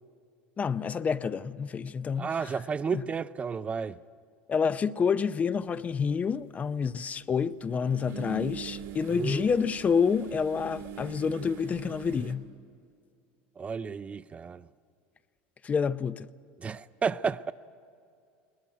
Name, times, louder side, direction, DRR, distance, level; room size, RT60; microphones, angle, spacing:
voice 1, 0.6-2.5 2.9-3.0 4.5-12.4 15.6-16.3, left 6 dB, 25° left, 0.6 m, -28 dB
voice 2, 2.2-4.0 9.1-9.5 13.6-14.7 16.6-17.5, right 6 dB, 25° right, 0.5 m, -32 dB
sound 1, 5.8-5.9 7.7-12.3, right 6 dB, 75° right, 2.5 m, -42 dB
20.5 x 20.0 x 9.2 m
supercardioid pair, 110°, 5 cm